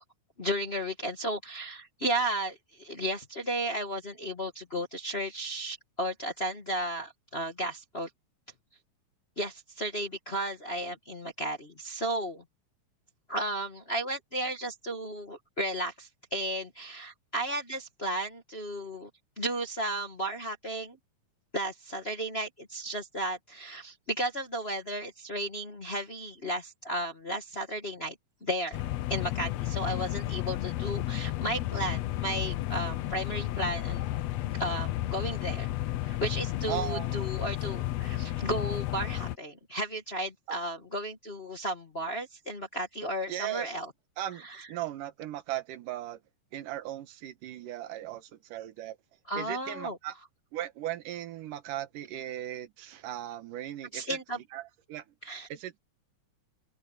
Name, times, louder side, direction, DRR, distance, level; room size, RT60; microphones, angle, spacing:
voice 1, 0.4-8.1 9.4-12.4 13.3-19.1 19.4-21.0 21.5-28.1 28.4-28.8 29.1-34.0 34.5-35.7 36.0-43.9 44.4-44.7 49.3-50.0 53.9-54.4 55.2-55.5, right 1 dB, 40° left, 0.9 m, -34 dB
sound 1, 28.7-39.4, left 15 dB, 75° left, 1.6 m, -32 dB
voice 2, 36.7-37.3 40.5-40.6 43.3-43.7 44.2-46.2 46.5-49.0 49.4-50.1 50.5-54.2 54.5-55.0 55.5-55.8, right 12 dB, 80° right, 2.8 m, -37 dB
open air
omnidirectional pair, 3.7 m